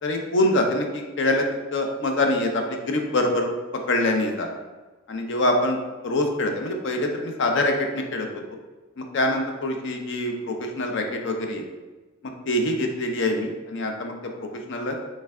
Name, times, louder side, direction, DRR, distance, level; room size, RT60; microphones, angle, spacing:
voice 1, 0.0-1.5 1.7-3.5 3.9-4.5 5.1-8.3 9.0-11.6 12.5-14.3 14.7-14.9, left 1 dB, 55° left, 3 dB, 0.5 m, -24 dB
3.3 x 3.2 x 3.5 m, 1.2 s
head